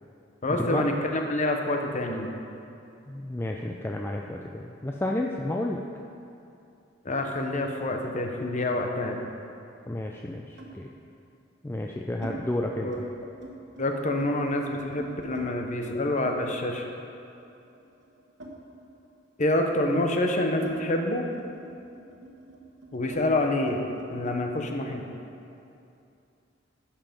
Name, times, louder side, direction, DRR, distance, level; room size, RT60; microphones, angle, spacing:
voice 1, 0.4-2.3 7.0-9.2 12.8-13.0 13.8-16.9 19.4-21.2 22.9-23.8 24.1-25.0, left 1 dB, 40° left, 3 dB, 0.9 m, -27 dB
voice 2, 3.1-5.8 9.9-10.9 11.6-13.1, left 1 dB, 10° left, 1 dB, 0.4 m, -31 dB
sound 1, 8.5-9.3 10.6-10.8 11.6-12.4 12.7-13.1 13.3-15.5 16.2-19.1 19.4-24.4, right 1 dB, 65° right, 1.2 m, -45 dB
11.5 x 5.9 x 5.2 m, 2.6 s
head